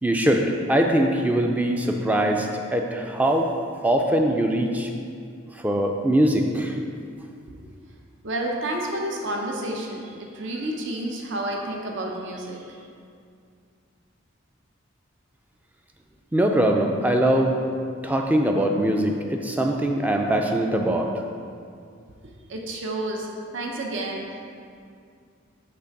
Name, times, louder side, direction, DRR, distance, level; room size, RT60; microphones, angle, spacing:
voice 1, 0.0-3.5 3.8-4.9 5.6-6.8 16.3-17.6 18.0-21.1, right 1 dB, 10° right, 2 dB, 0.3 m, -22 dB
voice 2, 8.2-12.9 22.5-24.3, right 1 dB, 65° right, 0 dB, 0.6 m, -30 dB
6.0 x 3.2 x 5.7 m, 2.3 s
head